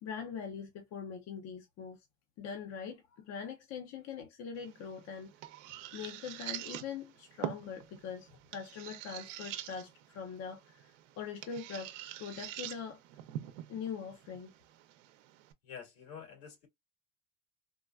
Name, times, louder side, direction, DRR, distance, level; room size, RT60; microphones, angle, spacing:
voice 1, 0.0-2.0 2.4-5.3 5.9-13.0 13.7-14.5, left 6 dB, 45° left, 0.7 m, -42 dB
sound 1, 4.6-15.5, right 13 dB, 85° right, 0.7 m, -45 dB
voice 2, 15.6-16.7, left 7 dB, 70° left, 2.3 m, -48 dB
3.7 x 2.2 x 2.3 m
supercardioid pair, 125°, 36 cm